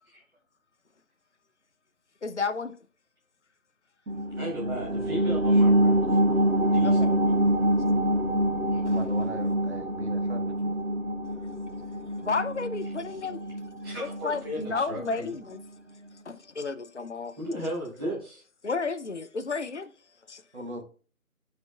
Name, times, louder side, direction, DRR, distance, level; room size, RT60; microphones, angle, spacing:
voice 1, 2.2-2.7 6.8-7.2 8.8-9.0 12.2-13.4 14.0-15.6 16.3-17.3 18.6-19.9 20.3-20.4, left 4 dB, 50° left, 0.7 m, -32 dB
sound 1, 4.1-15.2 15.6-15.7, right 1 dB, 75° right, 2.0 m, -25 dB
voice 2, 4.4-6.2 6.6-7.0 8.7-8.8 13.8-15.3 17.4-18.4, equal, 15° right, 2.3 m, -35 dB
voice 3, 8.9-10.7 20.5-20.8, right 1 dB, 50° right, 1.4 m, -40 dB
13.5 x 5.1 x 2.3 m
figure-of-eight pair, 165°, 44 cm